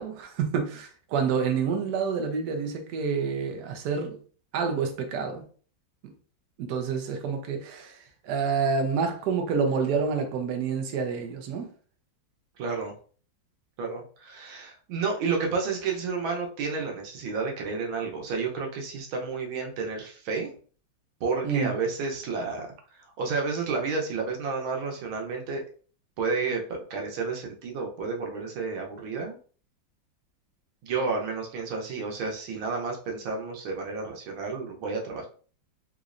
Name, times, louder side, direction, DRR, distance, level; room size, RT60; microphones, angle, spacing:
voice 1, 0.0-4.2 4.5-5.4 6.6-8.0 8.2-11.7 21.4-21.7, right 5 dB, 65° right, 1.1 m, -28 dB
voice 2, 12.6-12.9 13.8-20.5 21.2-25.6 26.2-29.4 30.8-35.3, right 4 dB, 90° right, 1.6 m, -31 dB
3.8 x 3.1 x 2.5 m
omnidirectional pair, 2.1 m